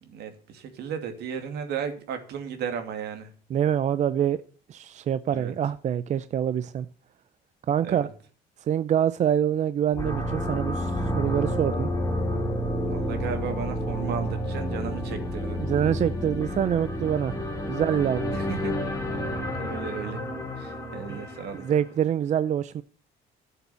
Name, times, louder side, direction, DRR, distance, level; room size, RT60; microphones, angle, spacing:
voice 1, 0.0-3.3 5.2-5.5 7.8-8.1 12.8-15.6 18.3-18.9 19.6-20.2 20.6-21.6, right 7 dB, 75° right, 2.5 m, -35 dB
voice 2, 3.5-4.4 4.7-6.9 7.7-8.1 8.7-11.9 15.6-17.4 17.7-18.3 21.1-21.2 21.5-22.8, right 9 dB, 45° right, 0.5 m, -25 dB
sound 1, 9.9-21.9, equal, 20° left, 2.9 m, -30 dB
12.0 x 6.9 x 6.9 m
cardioid pair, 110°, 17 cm